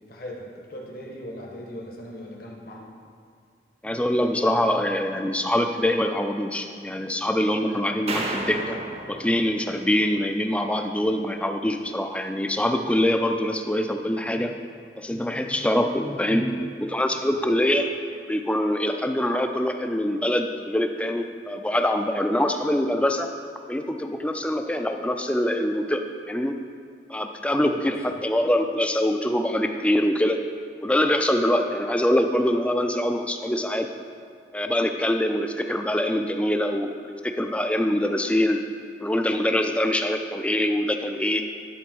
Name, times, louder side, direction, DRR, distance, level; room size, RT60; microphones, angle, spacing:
voice 1, 0.1-2.9 17.2-17.5 27.6-28.1, equal, 55° left, -2 dB, 1.2 m, -39 dB
voice 2, 3.8-8.8 9.1-14.5 15.0-17.9 18.3-23.3 23.7-26.0 26.3-26.5 27.1-30.4 30.8-33.9 34.5-38.6 39.0-41.4, left 1 dB, 5° left, 5 dB, 0.4 m, -24 dB
sound 1, 8.1-10.4, right 2 dB, 35° right, 0.8 m, -33 dB
10.0 x 4.3 x 6.1 m, 2.3 s
head